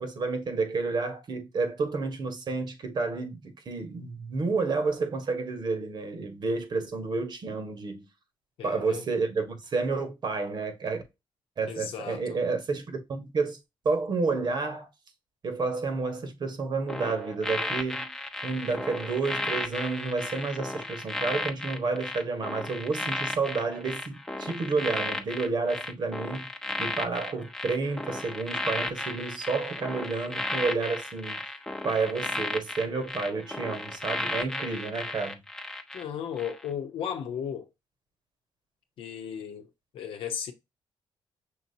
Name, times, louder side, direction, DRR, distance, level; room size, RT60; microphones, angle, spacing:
voice 1, 0.0-8.0 8.6-11.0 11.6-13.6 13.8-14.9 15.4-18.1 18.4-26.5 26.8-31.4 31.8-35.4, right 4 dB, 55° right, 1.4 m, -30 dB
voice 2, 8.6-9.0 11.6-12.4 35.9-37.7 39.0-39.7 39.9-40.5, left 8 dB, 80° left, 0.8 m, -35 dB
sound 1, 16.9-36.0 36.4-36.7, left 2 dB, 5° left, 0.7 m, -34 dB
6.2 x 3.0 x 2.7 m
cardioid pair, 100°, 9 cm